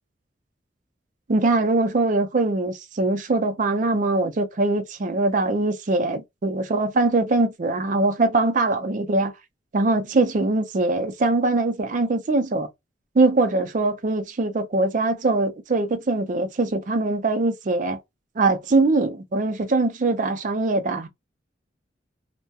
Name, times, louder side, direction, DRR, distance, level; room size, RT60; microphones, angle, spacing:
voice 1, 1.3-9.3 9.7-12.7 13.2-18.0 18.4-21.1, right 2 dB, 45° right, 0.4 m, -22 dB
2.2 x 2.1 x 2.7 m
head